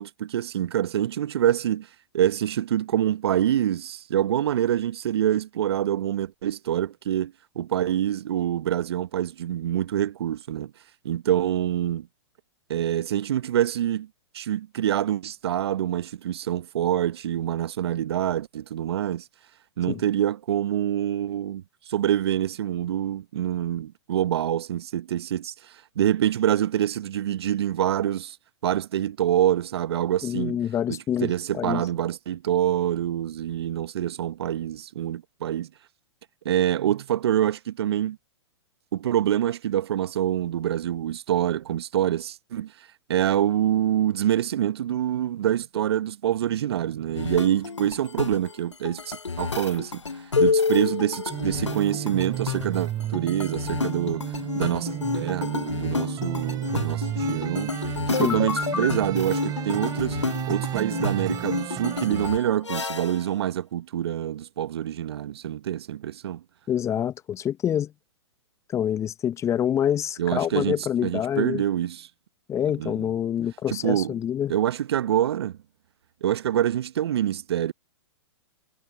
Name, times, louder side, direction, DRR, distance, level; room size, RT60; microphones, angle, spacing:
voice 1, 0.0-1.9 2.1-10.7 11.0-12.1 12.7-14.1 14.3-19.3 19.8-28.4 28.6-30.6 30.9-35.7 36.4-38.2 38.9-42.7 43.1-50.0 50.4-57.7 58.1-60.2 60.5-66.4 70.2-70.7 71.0-72.1 72.8-73.1 73.7-74.1 74.5-75.6 76.2-77.7, right 11 dB, 60° right, 1.2 m, -26 dB
voice 2, 30.2-31.8 58.1-58.4 66.7-67.9 68.7-71.6 72.5-74.5, left 10 dB, 20° left, 0.9 m, -26 dB
sound 1, 47.2-63.3, left 4 dB, 90° left, 0.9 m, -29 dB
sound 2, 51.3-62.3, right 12 dB, 25° right, 3.3 m, -33 dB
figure-of-eight pair, 110°, 15 cm